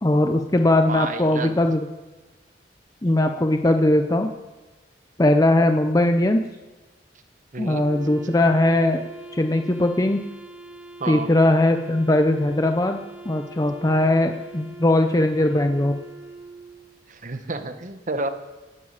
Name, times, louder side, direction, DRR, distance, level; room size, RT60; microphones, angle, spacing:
voice 1, 0.0-1.9 3.0-4.3 5.2-6.4 7.6-9.0 9.3-10.2 11.1-13.0 13.3-16.0, left 1 dB, 20° left, 6 dB, 0.6 m, -20 dB
voice 2, 0.9-1.6 7.5-7.9 11.0-11.3 17.1-18.3, right 3 dB, 45° right, 8 dB, 1.1 m, -30 dB
Wind instrument woodwind instrument, 7.7-17.0, right 2 dB, 10° right, 2.6 m, -42 dB
11.5 x 9.8 x 8.7 m, 1.2 s
head